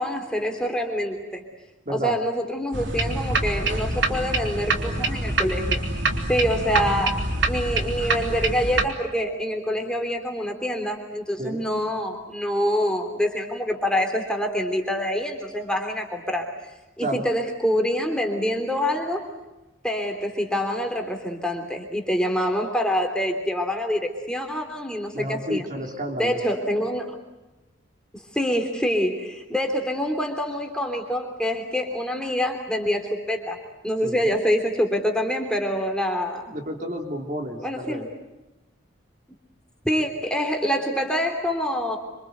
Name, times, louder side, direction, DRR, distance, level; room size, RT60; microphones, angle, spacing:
voice 1, 0.0-1.4 1.9-5.8 6.3-7.1 7.5-16.5 17.0-19.3 19.8-25.7 26.2-27.1 28.1-33.6 33.8-36.5 37.6-38.1 39.8-42.0, equal, 5° left, 3 dB, 3.2 m, -26 dB
sound 1, 2.7-8.9, right 2 dB, 65° right, 3.5 m, -25 dB
voice 2, 25.1-26.4 34.0-34.3 36.5-38.1, equal, 40° right, 2 dB, 3.4 m, -31 dB
27.0 x 26.0 x 8.2 m, 1.0 s
head